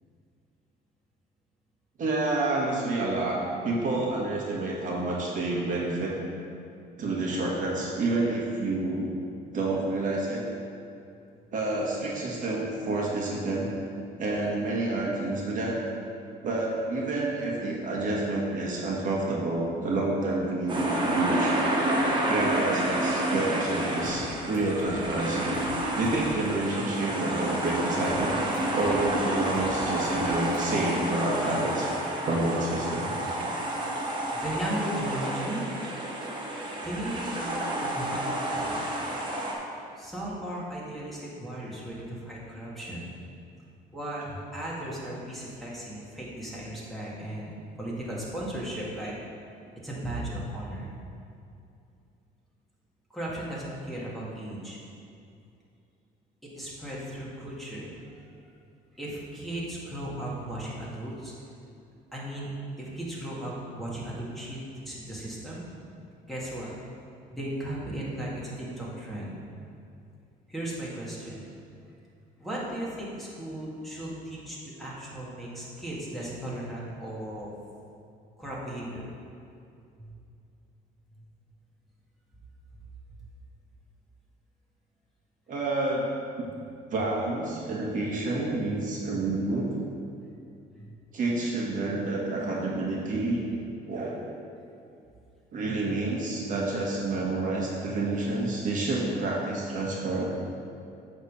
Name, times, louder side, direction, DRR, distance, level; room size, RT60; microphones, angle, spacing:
voice 1, 2.0-3.4 3.6-6.1 7.0-9.1 9.5-10.4 11.5-13.7 14.2-15.8 16.4-21.5 22.3-25.6 26.0-28.4 28.7-33.1 85.5-86.0 86.9-89.7 91.1-93.5 93.9-94.2 95.5-100.2, right 2 dB, 50° right, -4 dB, 1.5 m, -29 dB
sound 1, 20.7-39.5, right 1 dB, 30° right, 1.3 m, -29 dB
sound 2, 24.0-24.3 24.5-25.0 25.5-25.8 26.0-26.3 28.0-28.3 28.5-29.0 29.5-29.8 30.0-30.3 30.5-30.6, left 1 dB, 25° left, 1.4 m, -44 dB
voice 2, 34.3-35.7 36.8-38.9 40.0-43.0 43.9-49.1 49.8-50.9 53.1-54.8 56.4-58.0 58.9-61.3 62.1-65.7 66.2-66.7 67.3-69.3 70.5-71.5 72.4-77.5 78.4-79.1 80.0-80.1 90.8-90.9, right 1 dB, ahead, -7 dB, 1.9 m, -36 dB
8.2 x 3.6 x 6.7 m, 2.6 s
cardioid pair, 110°, 17 cm